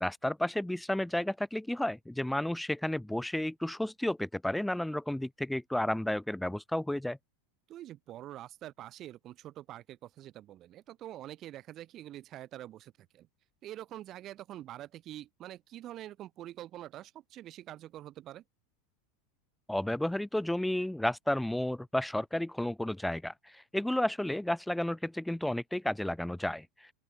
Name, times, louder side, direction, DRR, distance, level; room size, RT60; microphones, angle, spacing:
voice 1, 0.0-7.2 19.7-26.7, left 1 dB, 5° left, 0.7 m, -32 dB
voice 2, 7.7-13.3 13.6-18.4, right 13 dB, 35° right, 1.0 m, -46 dB
open air
supercardioid pair, 150°, 0 cm